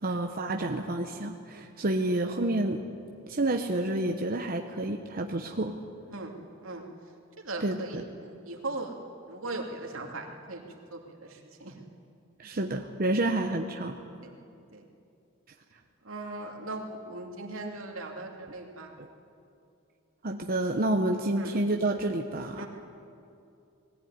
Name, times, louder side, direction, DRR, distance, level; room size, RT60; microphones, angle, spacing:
voice 1, 0.0-2.8 3.3-5.7 7.6-8.0 12.4-14.0 19.0-19.1 20.2-22.6, right 2 dB, 45° right, 3 dB, 0.9 m, -29 dB
voice 2, 7.4-9.0 9.3-10.7 10.9-11.8 12.4-12.5 14.2-14.4 14.7-14.8 16.0-18.9 21.4-21.5 22.6-22.7, right 2 dB, 85° right, 1 dB, 2.6 m, -39 dB
20.5 x 14.5 x 9.6 m, 2.6 s
head